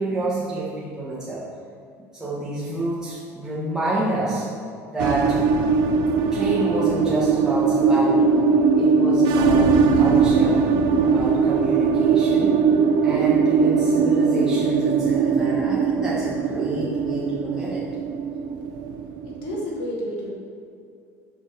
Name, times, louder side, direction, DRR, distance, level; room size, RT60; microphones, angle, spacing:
voice 1, 0.0-1.4 2.1-4.5 4.9-5.4 6.3-8.3 8.7-10.6 11.0-12.6 13.0-17.9, right 1 dB, 5° right, -8 dB, 1.4 m, -28 dB
sound 1, 5.0-19.7, right 5 dB, 60° right, 0.5 m, -20 dB
voice 2, 19.2-20.3, equal, 70° left, -3 dB, 1.4 m, -30 dB
5.4 x 4.6 x 4.2 m, 2.4 s
hypercardioid pair, 85°, 8 cm